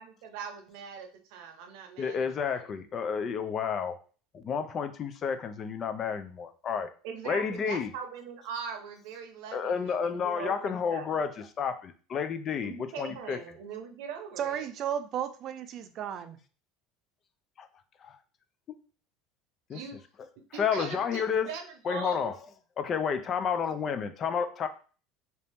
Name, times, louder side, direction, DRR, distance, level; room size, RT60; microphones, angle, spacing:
voice 1, 0.0-2.6 7.0-11.2 12.6-14.7 19.7-20.0 20.5-22.3, right 7 dB, 75° right, 0.7 m, -41 dB
voice 2, 2.0-4.0 4.3-6.9 7.2-7.9 9.5-13.4 17.6-17.7 18.0-18.2 19.7-19.8 20.6-21.5 21.8-22.4 22.8-24.7, left 6 dB, 35° left, 0.4 m, -31 dB
voice 3, 14.4-16.4, right 9 dB, 45° right, 0.4 m, -34 dB
2.9 x 2.7 x 3.4 m
supercardioid pair, 120°, 0 cm